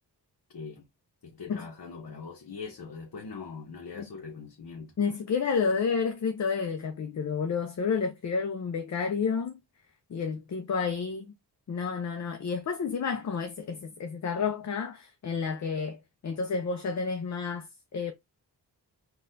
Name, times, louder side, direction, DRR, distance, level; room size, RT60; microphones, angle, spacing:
voice 1, 0.5-0.9 1.2-4.9, left 5 dB, 60° left, 0.8 m, -42 dB
voice 2, 5.0-9.6 10.1-11.3 11.7-18.1, left 5 dB, 45° left, 0.4 m, -30 dB
4.0 x 2.3 x 2.6 m
wide cardioid pair, 70°, 41 cm